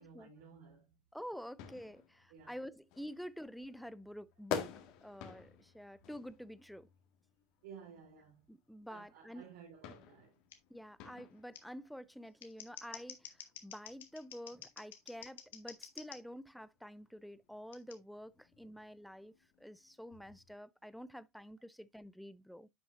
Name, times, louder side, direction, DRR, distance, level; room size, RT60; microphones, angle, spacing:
voice 1, 0.0-1.0 1.9-2.0 2.3-2.6 7.6-8.5 8.9-10.4 14.6-14.7, right 6 dB, 70° right, 3.2 m, -56 dB
sound 1, 1.1-20.5, left 9 dB, 60° left, 1.7 m, -51 dB
voice 2, 1.1-4.7 5.0-6.9 8.5-9.4 10.7-22.7, equal, ahead, 0.4 m, -48 dB
Scissors, 10.5-10.6 11.5-11.6 12.3-16.2 17.7-18.0, left 9 dB, 80° left, 1.4 m, -50 dB
10.0 x 6.0 x 2.6 m
hypercardioid pair, 85°, 0 cm